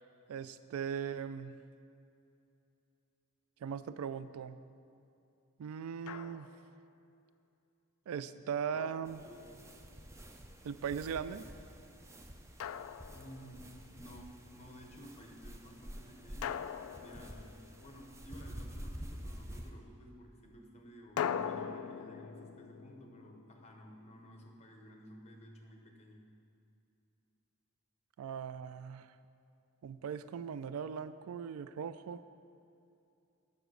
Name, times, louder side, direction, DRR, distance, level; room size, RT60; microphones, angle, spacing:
voice 1, 0.3-1.6 3.6-4.6 5.6-6.5 8.1-9.3 10.6-11.4 28.2-29.1 29.8-32.2, right 7 dB, 85° right, 13 dB, 0.3 m, -39 dB
Drum, 6.1-6.7 8.7-9.8 12.6-13.8 16.4-18.1 21.2-24.1, left 8 dB, 80° left, 0.3 m, -41 dB
sound 1, 9.0-19.7, equal, 15° right, 0.4 m, -49 dB
voice 2, 13.1-26.2, equal, 30° left, 2 dB, 0.8 m, -54 dB
7.0 x 5.7 x 6.2 m, 2.7 s
head